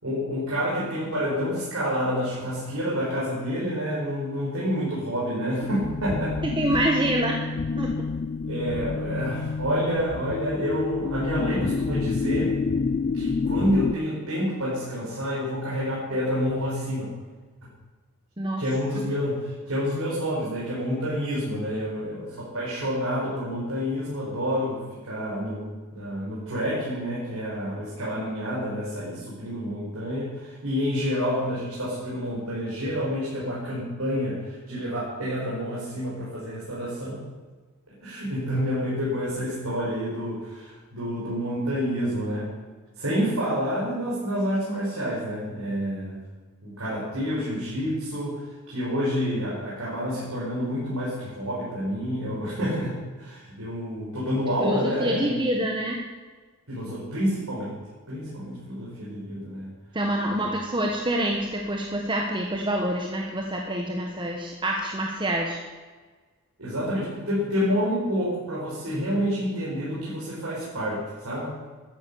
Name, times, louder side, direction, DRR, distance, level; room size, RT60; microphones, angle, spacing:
voice 1, 0.0-6.4 6.7-6.8 8.4-12.5 13.1-17.2 18.6-37.2 38.0-42.5 43.0-46.2 46.6-55.3 56.7-57.8 58.1-59.7 60.3-60.5 66.6-71.6, equal, 75° right, -7 dB, 5.3 m, -28 dB
sound 1, 5.6-13.9, left 4 dB, 35° left, 0.3 m, -28 dB
voice 2, 6.4-7.4 7.8-7.9 18.4-18.6 54.6-56.0 59.9-65.6, right 1 dB, 20° right, 1 dB, 1.4 m, -26 dB
13.0 x 10.5 x 7.0 m, 1.4 s
head